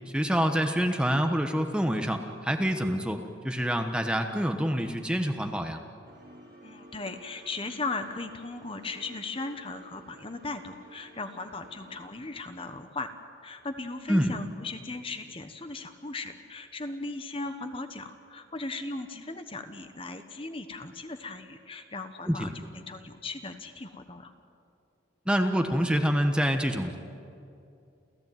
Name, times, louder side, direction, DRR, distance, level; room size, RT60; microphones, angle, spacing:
voice 1, 0.1-5.8 14.1-14.3 22.3-22.5 25.3-27.0, equal, 5° right, 5 dB, 1.2 m, -26 dB
sound 1, 6.0-12.0, right 1 dB, 55° right, 6.6 m, -53 dB
voice 2, 6.6-13.1 13.4-24.3, left 3 dB, 30° left, 8 dB, 1.1 m, -37 dB
29.5 x 15.0 x 9.2 m, 2.6 s
head